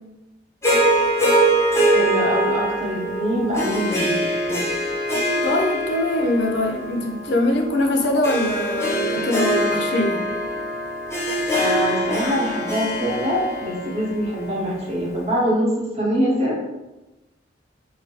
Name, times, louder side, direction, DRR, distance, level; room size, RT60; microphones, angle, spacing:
Harp, 0.6-15.0, right 1 dB, 15° left, 0.5 m, -23 dB
voice 1, 1.9-4.2 4.5-4.6 11.5-16.6, equal, 35° right, -5 dB, 0.8 m, -24 dB
voice 2, 5.4-10.2, left 1 dB, 65° left, 2 dB, 0.5 m, -22 dB
3.2 x 2.2 x 2.8 m, 1.0 s
head